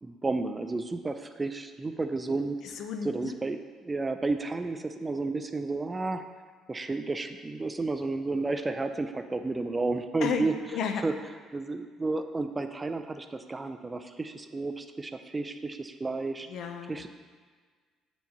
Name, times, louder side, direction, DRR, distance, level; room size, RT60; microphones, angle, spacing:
voice 1, 0.0-2.6 3.0-6.2 6.7-10.6 11.0-11.1 11.5-16.5 16.9-17.1, right 3 dB, 20° right, 8 dB, 0.4 m, -32 dB
voice 2, 2.7-3.4 10.2-10.5 10.7-11.0 16.5-17.0, left 6 dB, 65° left, 6 dB, 0.5 m, -32 dB
7.7 x 4.5 x 2.8 m, 1.5 s
cardioid pair, 90°, 0 cm